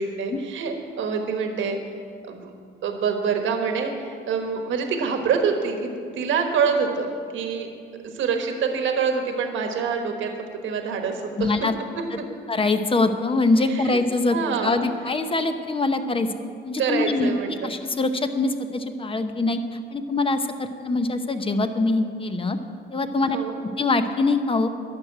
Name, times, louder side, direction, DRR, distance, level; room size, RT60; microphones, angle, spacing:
voice 1, 0.0-1.8 2.2-2.5 2.8-7.7 8.1-10.3 10.6-11.5 12.2-12.3 13.6-14.0 14.3-14.8 16.8-17.7 23.2-23.6, right 5 dB, 75° right, 4 dB, 1.3 m, -26 dB
voice 2, 11.4-11.7 12.5-16.3 16.6-17.3 17.6-19.6 19.9-22.6 22.9-23.4 23.8-24.7, left 3 dB, 25° left, 8 dB, 0.9 m, -23 dB
11.5 x 6.6 x 8.7 m, 2.3 s
cardioid pair, 90°, 20 cm